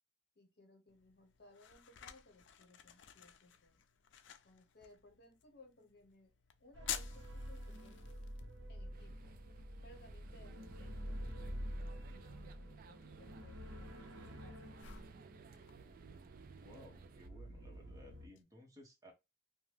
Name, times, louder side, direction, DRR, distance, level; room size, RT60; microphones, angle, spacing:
voice 1, 0.3-3.8 4.4-6.3 6.6-8.0 8.7-9.3 9.8-13.9 14.4-14.9, left 1 dB, 55° left, 0.9 m, -63 dB
sound 1, 0.9-18.4, left 9 dB, 75° left, 0.4 m, -54 dB
sound 2, 6.7-18.3, equal, 85° right, 0.8 m, -48 dB
sound 3, 8.9-17.3, right 5 dB, 50° right, 0.3 m, -57 dB
voice 2, 16.6-19.1, left 1 dB, 15° right, 1.0 m, -58 dB
2.8 x 2.2 x 3.2 m
head